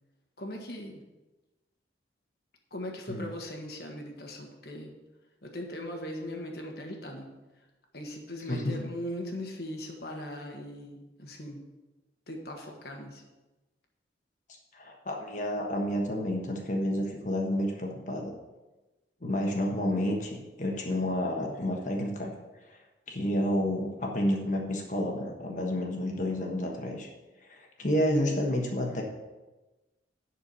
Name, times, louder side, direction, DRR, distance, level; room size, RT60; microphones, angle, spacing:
voice 1, 0.4-1.0 2.7-4.9 5.4-7.3 7.6-7.7 7.9-11.6 12.3-13.2, left 1 dB, 60° left, 1 dB, 1.4 m, -39 dB
voice 2, 14.7-18.3 19.2-22.3 22.7-22.8 23.1-27.1 27.4-29.0, left 1 dB, 45° left, 1 dB, 1.3 m, -30 dB
11.0 x 4.6 x 6.9 m, 1.1 s
head